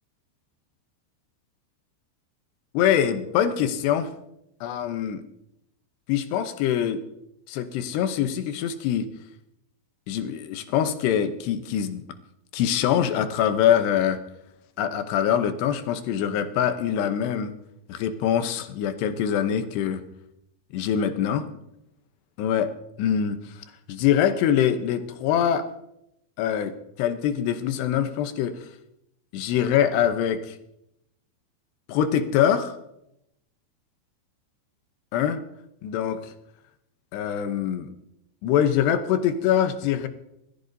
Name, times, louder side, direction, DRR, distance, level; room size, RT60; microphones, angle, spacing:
voice 1, 2.7-4.1 4.6-5.2 6.1-7.0 7.5-9.1 10.1-12.0 12.5-14.2 14.8-17.5 17.9-20.0 20.7-21.5 22.4-22.7 23.0-23.6 23.9-25.7 26.4-28.6 29.3-30.6 31.9-32.8 35.1-35.4 35.8-36.3 37.1-37.9 38.4-40.1, left 9 dB, 75° left, 9 dB, 2.7 m, -24 dB
25.0 x 14.5 x 2.7 m, 0.82 s
omnidirectional pair, 5.4 m